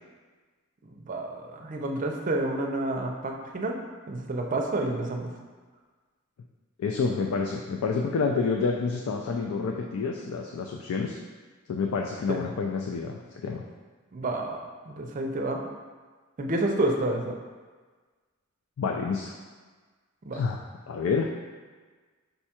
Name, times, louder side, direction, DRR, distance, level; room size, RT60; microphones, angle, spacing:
voice 1, 0.9-3.8 4.1-5.3 12.3-12.4 14.1-15.6 16.4-17.4 20.3-20.4, right 2 dB, 40° right, 2 dB, 0.5 m, -29 dB
voice 2, 6.8-11.2 11.7-13.6 18.8-19.3 20.3-20.6 20.9-21.3, left 4 dB, 85° left, 1 dB, 0.4 m, -28 dB
5.4 x 2.3 x 4.2 m, 1.4 s
head